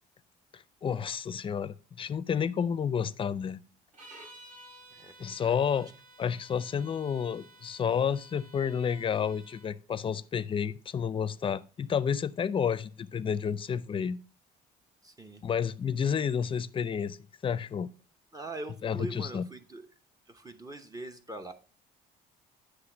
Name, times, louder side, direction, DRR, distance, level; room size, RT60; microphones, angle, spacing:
voice 1, 0.5-3.6 5.2-5.9 6.2-14.2 15.4-17.2 17.4-17.9 18.8-19.5, left 7 dB, 30° left, 0.5 m, -30 dB
sound 1, 3.9-9.7, right 1 dB, 50° right, 2.9 m, -53 dB
voice 2, 4.9-5.8 15.0-15.4 18.3-19.9 20.3-21.5, right 2 dB, 20° right, 0.8 m, -42 dB
9.7 x 3.3 x 5.9 m
cardioid pair, 110°, 17 cm